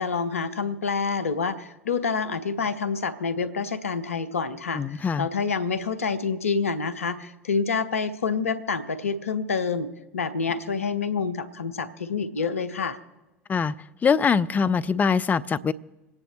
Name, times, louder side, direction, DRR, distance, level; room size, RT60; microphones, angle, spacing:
voice 1, 0.0-13.0, left 5 dB, 80° left, 12 dB, 0.8 m, -27 dB
voice 2, 4.7-5.3 13.5-13.7 14.0-15.7, left 6 dB, 20° left, 14 dB, 0.5 m, -23 dB
27.5 x 9.6 x 3.2 m, 1.1 s
figure-of-eight pair, 80°, 7 cm